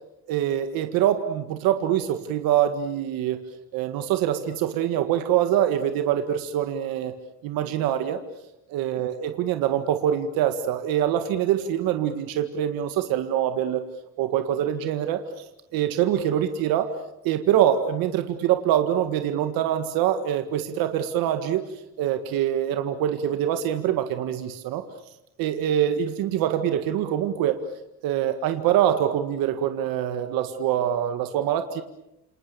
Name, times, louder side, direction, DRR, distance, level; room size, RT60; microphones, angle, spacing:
voice 1, 0.3-3.4 3.7-7.1 7.4-8.2 8.7-13.8 14.2-15.5 15.7-16.9 17.2-21.6 22.0-24.8 25.4-27.6 28.0-31.8, right 10 dB, 85° right, 8 dB, 1.8 m, -24 dB
28.5 x 28.5 x 6.9 m, 0.88 s
cardioid pair, 170°, 34 cm